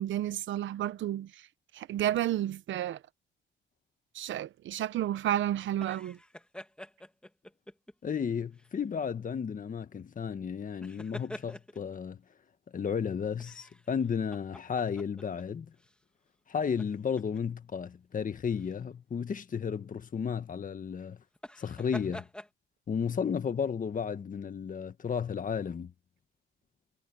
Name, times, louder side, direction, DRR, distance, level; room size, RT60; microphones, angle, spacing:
voice 1, 0.0-1.5 1.7-3.0 4.1-6.2, right 12 dB, 75° right, 1.0 m, -31 dB
sound 1, 5.8-7.9 8.5-8.7 10.7-12.0 13.4-15.4 15.8-15.9 16.6-17.4 18.5-18.8 21.3-22.5, left 1 dB, 5° left, 2.5 m, -47 dB
voice 2, 8.0-12.2 12.7-15.7 16.5-21.2 21.6-22.3 22.9-25.9, left 6 dB, 40° left, 1.7 m, -33 dB
cardioid pair, 90°, 20 cm